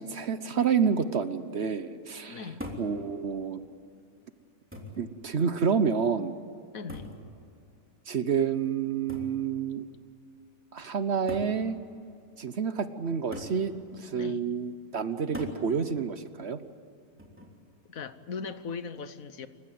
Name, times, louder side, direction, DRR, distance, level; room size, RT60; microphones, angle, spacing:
voice 1, 0.0-2.4 2.8-3.6 5.0-6.3 8.1-9.9 10.7-11.8 12.4-16.6, right 6 dB, 50° right, 12 dB, 1.0 m, -29 dB
voice 2, 2.3-2.7 6.7-7.1 14.2-14.4 17.9-19.5, left 5 dB, 70° left, 12 dB, 1.4 m, -39 dB
sound 1, 2.6-3.0 4.0-4.1 4.7-5.1 6.9-7.2 9.1-9.4 10.4-10.5 11.3-11.6 13.3-13.6 15.3-15.6 17.2-17.6, left 1 dB, 10° right, 3.1 m, -40 dB
28.0 x 15.5 x 9.3 m, 2.5 s
omnidirectional pair, 1.5 m